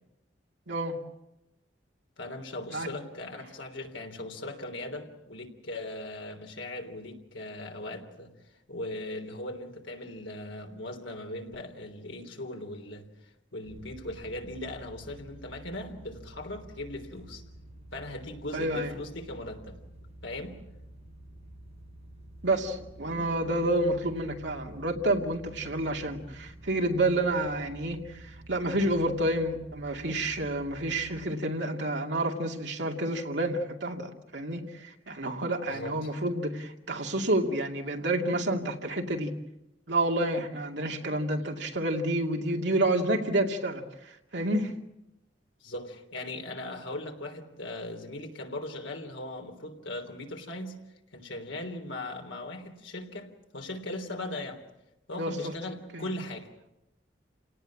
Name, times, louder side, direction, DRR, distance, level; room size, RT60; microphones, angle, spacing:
voice 1, 0.7-1.0 2.7-2.9 18.5-18.9 22.4-39.4 39.9-44.7 55.2-55.6 55.9-56.1, right 1 dB, 70° right, 2.6 m, -29 dB
voice 2, 2.2-8.3 8.7-13.1 13.5-17.4 17.9-19.8 20.2-20.6 35.6-36.1 45.6-50.7 51.1-54.6 55.1-56.5, left 1 dB, 80° left, 3.3 m, -39 dB
sound 1, 13.6-31.2, right 1 dB, 30° right, 7.4 m, -49 dB
29.0 x 18.0 x 8.6 m
head